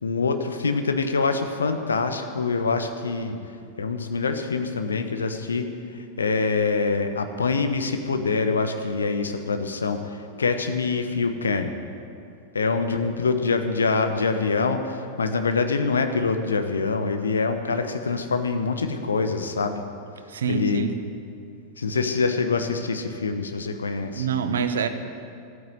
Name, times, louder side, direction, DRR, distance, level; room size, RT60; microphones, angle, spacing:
voice 1, 0.0-3.4 3.8-11.7 12.5-19.8 20.5-20.8 21.8-24.3, left 4 dB, 70° left, 7 dB, 1.0 m, -25 dB
voice 2, 20.3-21.0 24.2-24.9, right 6 dB, 65° right, 10 dB, 0.9 m, -25 dB
13.0 x 9.3 x 9.3 m, 2.4 s
figure-of-eight pair, 90°, 0 cm